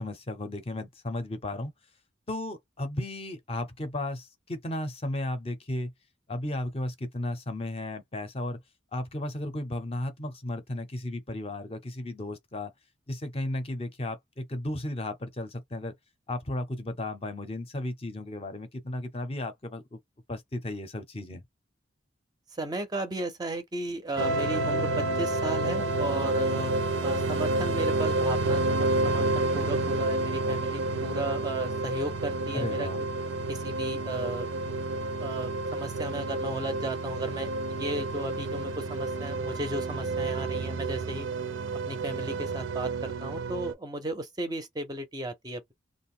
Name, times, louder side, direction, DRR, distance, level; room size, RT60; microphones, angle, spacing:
voice 1, 0.0-1.7 2.3-5.9 6.3-8.6 8.9-12.7 13.1-15.9 16.3-20.0 20.3-21.4 32.5-33.0, left 1 dB, 30° left, 0.5 m, -34 dB
voice 2, 22.5-26.7 27.0-32.9 33.5-34.5 35.2-37.5 37.8-41.3 41.9-45.7, right 1 dB, 20° right, 0.4 m, -35 dB
sound 1, 24.2-43.7, right 2 dB, 90° right, 0.5 m, -29 dB
2.4 x 2.0 x 3.6 m
head